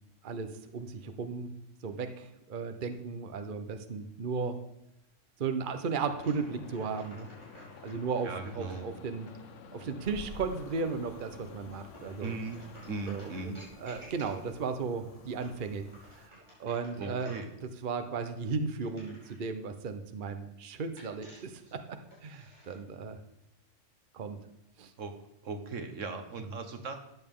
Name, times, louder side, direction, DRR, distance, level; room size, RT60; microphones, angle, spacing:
voice 1, 0.2-1.5 1.8-4.6 5.4-7.3 7.8-9.3 9.7-12.3 13.1-15.9 16.2-16.3 16.6-17.3 17.8-23.2 24.1-24.4 24.8-24.9, right 5 dB, 45° right, 8 dB, 0.9 m, -35 dB
sound 1, 6.1-13.5, left 5 dB, 80° left, 1.1 m, -51 dB
sound 2, 6.2-8.8 11.9-14.7 15.3-17.6 18.8-19.5 21.0-22.8, equal, 25° right, 5.4 m, -54 dB
voice 2, 8.2-8.9 12.2-12.6 12.9-13.6 17.0-17.5 25.0-25.1 25.4-27.1, right 3 dB, 85° right, 6 dB, 1.6 m, -38 dB
sound 3, 10.0-16.3, left 5 dB, 35° left, 0.8 m, -53 dB
13.5 x 9.0 x 3.7 m, 0.86 s
omnidirectional pair, 1.3 m